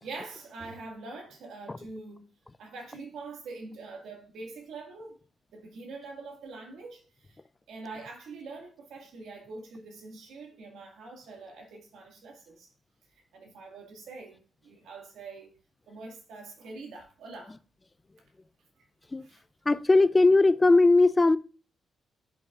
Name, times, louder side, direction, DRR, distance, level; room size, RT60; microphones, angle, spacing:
voice 1, 0.0-2.3 2.6-5.2 5.5-7.4 7.7-12.7 13.3-15.5 15.9-17.6 18.8-18.9 19.2-19.4, right 3 dB, 85° right, 1.9 m, -44 dB
voice 2, 19.7-21.4, left 3 dB, 25° left, 0.4 m, -19 dB
11.0 x 5.5 x 2.4 m
cardioid pair, 80°, 0 cm